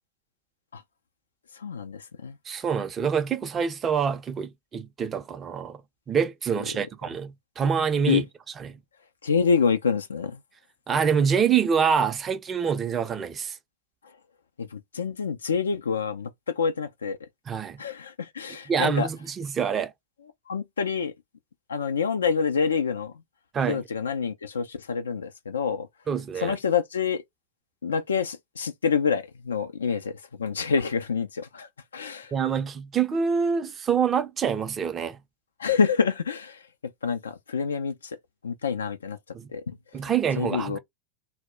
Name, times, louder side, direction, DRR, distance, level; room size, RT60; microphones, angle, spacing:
voice 1, 1.6-2.4 8.1-8.2 9.2-10.4 14.6-17.2 17.8-19.1 20.5-21.1 21.7-23.1 23.7-25.9 26.4-27.2 27.8-31.7 31.9-32.3 35.6-36.6 37.0-38.2 38.4-39.2 39.5-39.7 40.4-40.8, left 6 dB, 80° left, 0.3 m, -27 dB
voice 2, 2.5-5.8 6.1-8.2 8.6-8.8 10.9-13.6 17.5-17.8 18.7-19.9 23.5-23.8 26.1-26.6 32.3-35.2 39.3-39.5 39.9-40.8, right 7 dB, 25° right, 0.5 m, -26 dB
2.1 x 2.0 x 3.6 m
figure-of-eight pair, 90°, 0 cm